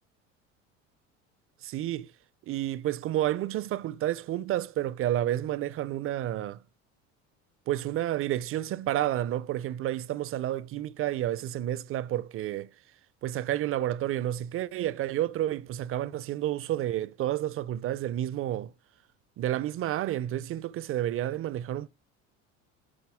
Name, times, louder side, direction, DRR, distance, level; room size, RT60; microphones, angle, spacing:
voice 1, 1.6-2.1 2.5-6.6 7.7-12.7 13.2-18.7 19.4-21.9, right 13 dB, 35° right, 0.5 m, -30 dB
9.9 x 4.1 x 3.5 m
hypercardioid pair, 75°, 37 cm